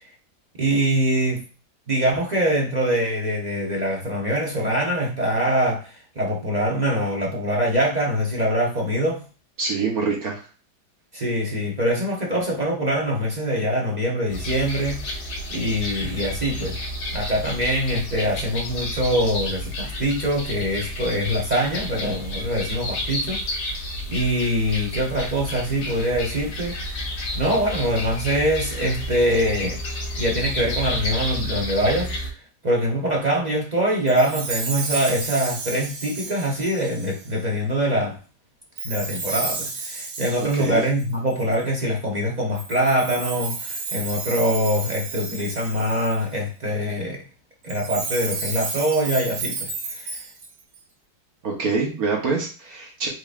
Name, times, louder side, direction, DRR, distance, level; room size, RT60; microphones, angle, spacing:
voice 1, 0.6-1.4 1.9-9.2 11.1-15.2 15.5-16.8 17.1-23.4 24.1-26.8 27.3-29.8 30.1-32.1 32.6-38.1 38.8-47.2 47.6-49.7 49.9-50.2, equal, 40° right, -2 dB, 0.6 m, -23 dB
voice 2, 9.6-10.4 31.4-31.5 40.5-40.8 51.4-53.1, right 4 dB, 60° right, -1 dB, 1.5 m, -25 dB
sound 1, 14.3-32.3, left 1 dB, 70° left, 1.6 m, -31 dB
Chime, 34.1-37.4 38.8-41.6 42.6-46.4 47.6-50.8, right 4 dB, 75° right, 1.6 m, -32 dB
4.6 x 3.8 x 2.5 m, 0.35 s
omnidirectional pair, 1.9 m